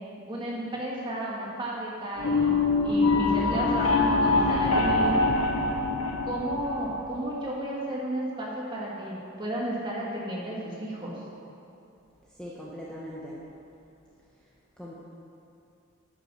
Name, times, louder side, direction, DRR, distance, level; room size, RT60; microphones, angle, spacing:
voice 1, 0.3-5.3 6.2-11.2, right 1 dB, 20° right, -5 dB, 2.0 m, -33 dB
sound 1, 2.2-7.2, left 3 dB, 70° left, 1.1 m, -24 dB
voice 2, 12.2-13.4 14.4-14.5 14.8-15.0, equal, 5° left, -7 dB, 1.0 m, -41 dB
9.8 x 8.6 x 6.3 m, 2.6 s
head